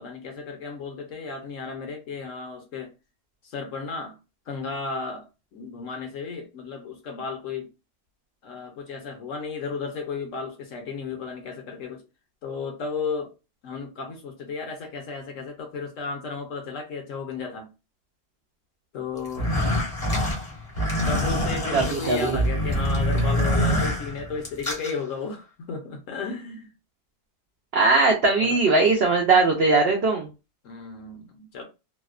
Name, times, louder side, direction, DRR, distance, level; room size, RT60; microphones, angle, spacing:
voice 1, 0.0-2.9 3.4-4.2 4.5-5.3 5.5-7.7 8.4-12.0 12.4-13.3 13.6-17.7 18.9-19.5 19.8-19.9 21.0-26.7 28.4-28.6 30.6-31.6, left 4 dB, 65° left, 0.8 m, -34 dB
sound 1, 19.3-24.9, equal, 35° left, 0.6 m, -25 dB
voice 2, 21.7-22.4 27.7-30.3, right 3 dB, 75° right, 0.5 m, -20 dB
2.7 x 2.1 x 2.4 m
omnidirectional pair, 1.7 m